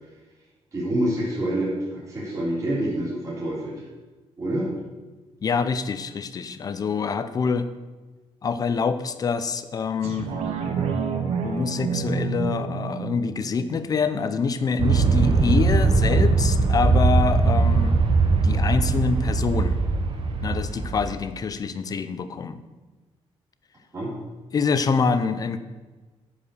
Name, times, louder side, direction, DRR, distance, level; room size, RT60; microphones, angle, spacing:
voice 1, 0.7-3.8 4.4-4.7 23.9-24.1, right 1 dB, 30° right, -7 dB, 3.4 m, -27 dB
voice 2, 5.4-7.7 8.4-10.3 11.4-18.0 18.4-19.8 20.4-22.6 24.5-25.6, left 5 dB, 35° left, 11 dB, 0.6 m, -25 dB
sound 1, 10.0-15.1 15.5-15.6, right 6 dB, 85° right, 1.3 m, -29 dB
Aircraft, 14.8-21.1, right 4 dB, 50° right, 1.1 m, -20 dB
10.5 x 5.0 x 6.9 m, 1.3 s
cardioid pair, 155°, 11 cm